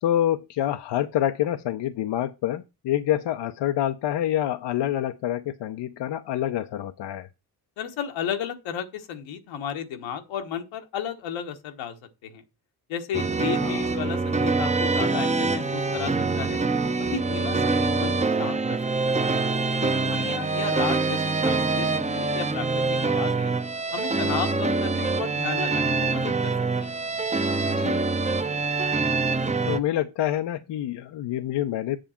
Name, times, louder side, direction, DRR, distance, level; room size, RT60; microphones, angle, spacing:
voice 1, 0.0-7.3 13.6-13.9 27.7-28.1 29.3-29.4 29.6-32.0, left 12 dB, 65° left, 0.7 m, -27 dB
voice 2, 7.8-11.9 12.2-12.4 12.9-16.6 17.0-18.8 19.0-19.2 19.8-23.5 23.9-26.5 26.8-27.0, left 8 dB, 85° left, 1.4 m, -33 dB
sound 1, 13.1-29.8, right 3 dB, 15° right, 0.8 m, -25 dB
7.6 x 6.9 x 4.3 m
supercardioid pair, 50°, 44 cm